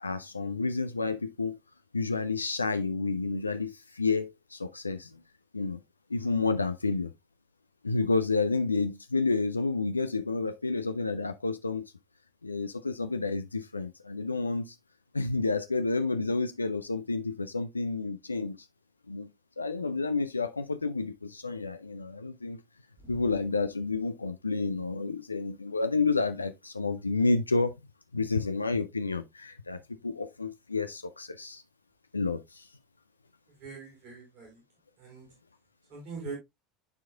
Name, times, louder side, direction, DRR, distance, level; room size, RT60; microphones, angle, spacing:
voice 1, 0.0-1.6 1.9-5.1 5.5-5.8 6.1-7.1 7.8-11.8 12.4-14.8 15.1-18.7 19.1-19.3 19.6-22.6 23.1-27.7 28.1-31.6 32.1-32.7, left 3 dB, 85° left, 0.3 m, -30 dB
voice 2, 33.6-34.6 35.0-35.3 35.9-36.3, right 5 dB, 55° right, 3.9 m, -43 dB
11.5 x 4.6 x 2.2 m
figure-of-eight pair, 70°, 0 cm